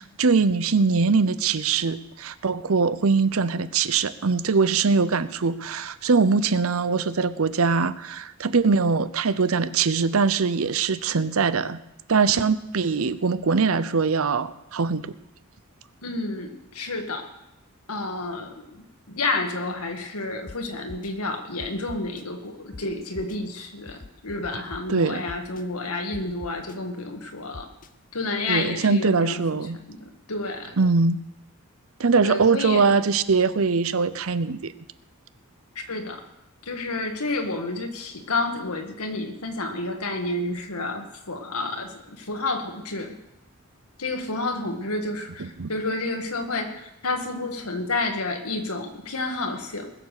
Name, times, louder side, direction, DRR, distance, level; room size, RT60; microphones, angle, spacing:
voice 1, 0.0-11.8 12.1-15.1 24.9-25.2 28.5-29.8 30.8-31.2 32.0-34.7 45.4-45.7, right 4 dB, 70° right, 15 dB, 0.7 m, -22 dB
voice 2, 16.0-17.3 17.9-27.7 28.1-29.6 29.9-30.7 32.2-32.9 35.8-36.3 36.6-43.2 44.0-49.9, left 2 dB, 90° left, 4 dB, 2.0 m, -30 dB
sound 1, 20.5-20.6 20.9-21.1 21.6-22.2 22.7-22.8 23.1-23.4 23.9-24.8 25.3-25.6 26.1-26.8 27.5-27.9, left 3 dB, 40° left, 0.6 m, -41 dB
20.5 x 7.3 x 6.6 m, 0.88 s
head